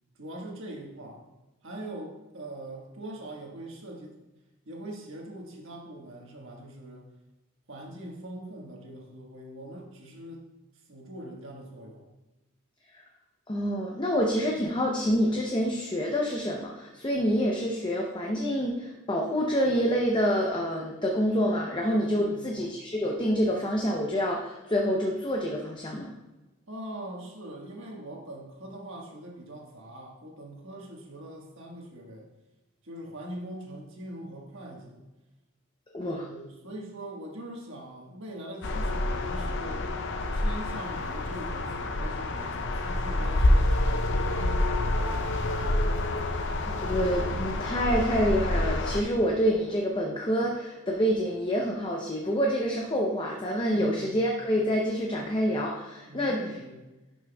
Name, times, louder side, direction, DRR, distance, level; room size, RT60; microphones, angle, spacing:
voice 1, 0.2-1.2 1.6-4.2 4.6-7.1 7.7-10.5 10.9-12.1 22.1-22.6 26.7-32.2 32.8-35.0 36.0-40.0 40.3-45.3 53.7-54.2 56.0-56.8, right 1 dB, 65° right, 0 dB, 1.5 m, -42 dB
voice 2, 13.5-26.1 35.9-36.3 46.3-56.4, equal, 20° left, -1 dB, 0.6 m, -27 dB
sound 1, 38.6-49.0, left 1 dB, 60° left, 0.6 m, -27 dB
11.0 x 6.0 x 2.3 m, 1.0 s
head